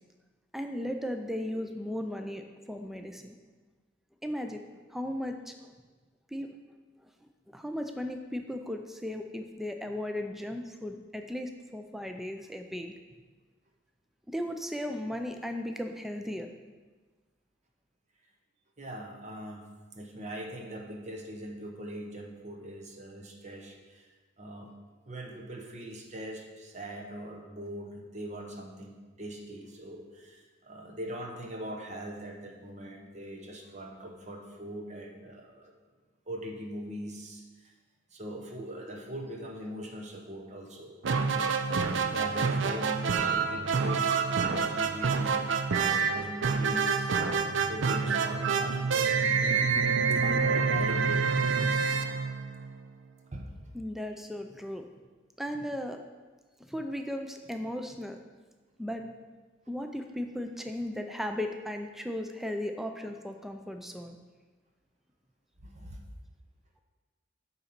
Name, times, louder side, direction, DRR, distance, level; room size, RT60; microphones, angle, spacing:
voice 1, 0.5-3.4 4.2-4.6 4.9-5.7 6.3-6.5 7.5-12.9 14.3-16.5 53.7-54.9 55.4-56.0 56.6-58.2 58.8-59.0 59.7-64.2, left 1 dB, ahead, 5 dB, 0.4 m, -36 dB
voice 2, 18.8-24.1 24.4-24.7 25.1-35.7 36.3-37.7 38.1-40.9 41.4-41.5 41.9-49.7 50.2-51.3 53.3-53.5 65.6-66.0, equal, 35° right, 1 dB, 1.0 m, -41 dB
sound 1, 41.0-52.9, right 5 dB, 70° right, 0.5 m, -27 dB
8.8 x 4.0 x 5.9 m, 1.3 s
head